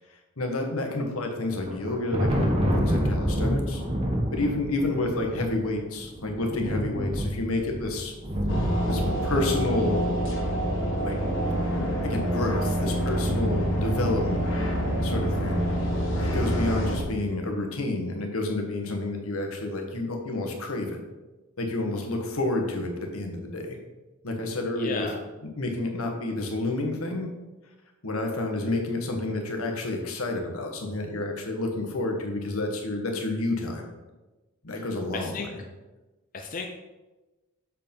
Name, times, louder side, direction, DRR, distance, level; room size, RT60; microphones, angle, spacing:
voice 1, 0.4-3.8 4.3-8.1 8.6-10.0 11.0-11.2 11.7-14.4 15.0-15.6 16.2-21.0 21.6-23.8 24.2-25.1 25.4-27.3 28.0-33.9 34.6-35.6, left 2 dB, 85° left, 2 dB, 1.5 m, -29 dB
Thunder, 1.5-10.9, equal, 30° right, 1.3 m, -28 dB
sound 1, 8.5-17.0, equal, 60° left, 1.6 m, -26 dB
voice 2, 24.8-25.2 34.7-34.8 35.1-35.5 36.3-36.7, left 4 dB, 40° left, 2 dB, 0.6 m, -33 dB
7.2 x 4.8 x 5.4 m, 1.1 s
head